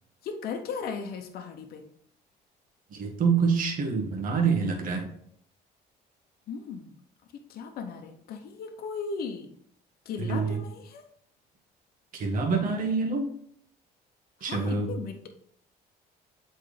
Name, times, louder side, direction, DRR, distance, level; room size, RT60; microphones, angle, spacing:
voice 1, 0.2-1.9 6.5-6.9 7.5-9.5 10.0-11.0 14.4-15.3, left 5 dB, 65° left, 4 dB, 0.9 m, -37 dB
voice 2, 2.9-5.1 10.2-10.6 12.1-13.3 14.4-14.9, right 5 dB, 55° right, 2 dB, 1.5 m, -26 dB
7.8 x 4.5 x 3.3 m, 0.64 s
cardioid pair, 110°, 17 cm